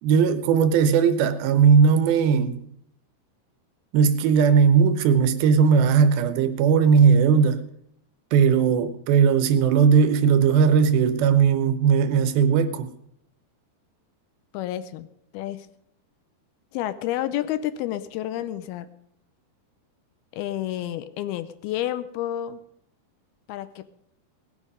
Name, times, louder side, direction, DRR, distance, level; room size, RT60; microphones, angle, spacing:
voice 1, 0.0-2.7 3.9-7.6 8.3-12.9, right 6 dB, 75° right, 2.5 m, -18 dB
voice 2, 14.5-15.1 15.3-15.7 16.7-18.9 20.3-22.6 23.5-23.9, left 12 dB, 80° left, 2.4 m, -30 dB
18.5 x 8.6 x 5.3 m
omnidirectional pair, 4.8 m